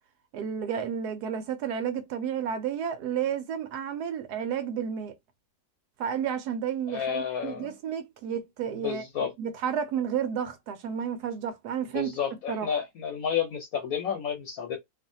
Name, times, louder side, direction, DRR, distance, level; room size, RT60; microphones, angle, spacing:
voice 1, 0.3-5.2 6.0-9.0 9.4-12.1 12.5-12.7, right 8 dB, 75° right, 1.0 m, -31 dB
voice 2, 6.9-7.7 8.8-9.3 11.9-14.8, left 7 dB, 65° left, 1.1 m, -31 dB
2.7 x 2.5 x 2.6 m
omnidirectional pair, 1.9 m